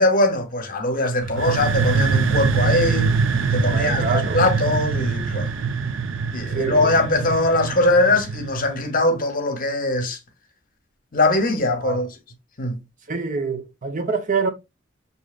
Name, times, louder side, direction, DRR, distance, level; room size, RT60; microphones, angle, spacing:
voice 1, 0.0-3.1 3.5-5.5 6.3-10.2 11.1-12.1 12.6-12.8, left 2 dB, 45° left, 0.9 m, -21 dB
sound 1, 1.2-8.9, right 5 dB, 70° right, 0.4 m, -23 dB
voice 2, 3.7-4.4 6.5-7.0 11.8-12.0 13.1-14.5, right 4 dB, 40° right, 0.8 m, -26 dB
6.2 x 2.8 x 2.4 m
head